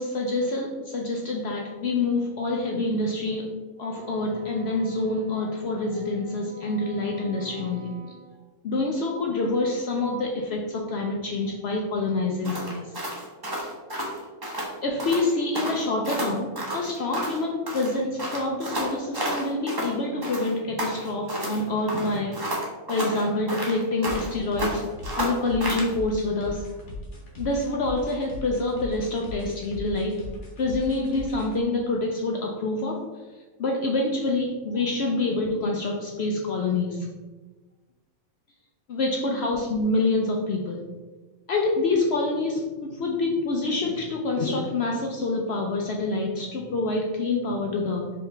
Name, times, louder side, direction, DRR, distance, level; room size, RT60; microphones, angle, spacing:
voice 1, 0.0-8.0 8.6-12.9 14.8-22.4 22.9-24.9 25.2-26.7 27.4-30.2 30.6-33.0 33.6-37.1 38.9-40.9 41.5-48.1, left 2 dB, 70° left, 0 dB, 0.6 m, -27 dB
Wind instrument woodwind instrument, 3.7-8.3, right 4 dB, 60° right, 0.9 m, -46 dB
sound 1, 12.4-14.7 15.0-15.3 15.5-17.4 17.7-19.9 20.2-21.6 21.9-24.3 24.6-25.9, right 1 dB, 20° right, 0.6 m, -31 dB
sound 2, 24.0-31.6, left 2 dB, 55° left, 1.3 m, -39 dB
4.6 x 3.1 x 3.2 m, 1.3 s
omnidirectional pair, 1.6 m